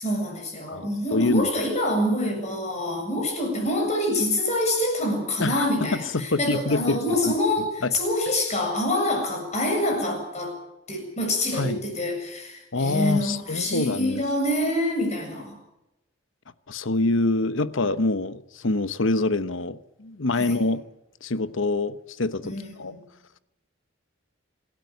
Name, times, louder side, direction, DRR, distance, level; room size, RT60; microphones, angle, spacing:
voice 1, 0.0-10.6 10.9-15.6 20.4-20.6 22.4-23.0, left 1 dB, 35° left, 7.6 m, -26 dB
voice 2, 0.7-1.5 5.4-7.0 7.3-7.4 7.8-7.9 11.5-11.8 12.7-14.2 16.7-20.8 21.2-22.9, left 2 dB, 70° left, 1.1 m, -25 dB
27.0 x 12.5 x 9.5 m
head